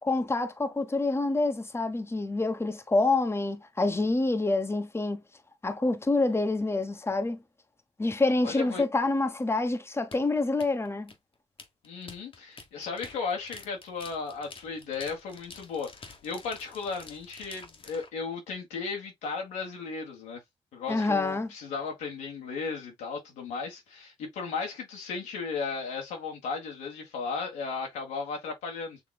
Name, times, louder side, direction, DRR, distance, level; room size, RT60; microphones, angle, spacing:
voice 1, 0.0-5.2 5.6-7.4 8.0-11.1 20.9-21.5, left 2 dB, 20° left, 1.0 m, -27 dB
voice 2, 8.4-8.8 11.8-20.4 20.7-29.0, left 5 dB, 85° left, 1.5 m, -35 dB
sound 1, 10.1-18.1, left 4 dB, 45° left, 1.2 m, -49 dB
6.9 x 3.1 x 2.3 m
supercardioid pair, 50°, 12 cm